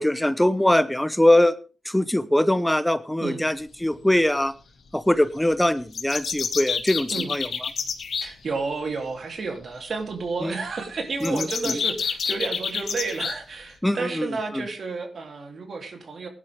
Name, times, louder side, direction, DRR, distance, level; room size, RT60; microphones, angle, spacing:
voice 1, 0.0-1.5 1.8-4.5 4.9-7.5 10.4-10.5 11.2-11.5 13.8-14.3 14.5-14.6, left 1 dB, 10° left, 14 dB, 0.9 m, -22 dB
sound 1, 5.9-8.3 11.2-13.3, left 6 dB, 85° left, 1.9 m, -28 dB
voice 2, 8.1-16.3, right 4 dB, 70° right, 4 dB, 3.3 m, -31 dB
17.0 x 11.0 x 3.6 m, 0.33 s
cardioid pair, 55°, 0 cm